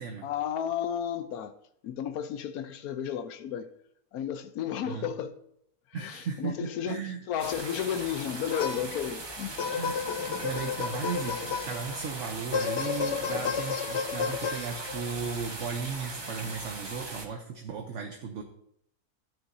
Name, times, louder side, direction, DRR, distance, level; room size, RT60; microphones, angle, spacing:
voice 1, 0.2-1.5 1.8-3.7 4.1-5.4 5.9-9.6, left 9 dB, 75° left, 1.1 m, -33 dB
voice 2, 5.9-7.2 9.7-18.4, right 6 dB, 60° right, 1.0 m, -36 dB
sound 1, 7.4-17.3, right 2 dB, 25° right, 0.7 m, -39 dB
sound 2, 8.5-9.1 9.6-12.0 12.5-15.1, left 6 dB, 60° left, 0.8 m, -32 dB
12.5 x 9.2 x 2.6 m
omnidirectional pair, 1.6 m